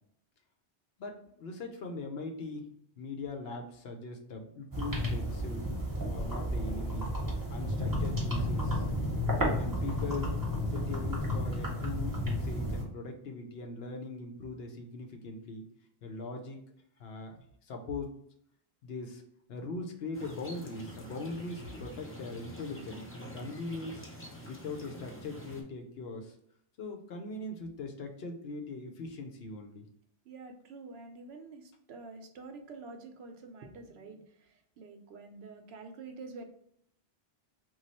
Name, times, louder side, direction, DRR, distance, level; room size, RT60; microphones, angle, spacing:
voice 1, 1.0-2.7 3.0-5.7 6.1-7.1 7.5-8.8 9.6-10.3 10.7-15.7 16.0-16.6 17.0-17.3 17.7-18.1 18.8-19.2 19.5-24.1 24.5-26.3 26.8-29.9, left 3 dB, 70° left, 3 dB, 0.8 m, -40 dB
sound 1, 4.7-12.8, equal, 20° right, 0.8 m, -32 dB
sound 2, 20.1-25.6, equal, 20° left, 0.4 m, -47 dB
voice 2, 30.2-36.4, right 3 dB, 75° right, 5 dB, 0.8 m, -47 dB
3.1 x 2.3 x 4.1 m, 0.70 s
omnidirectional pair, 1.1 m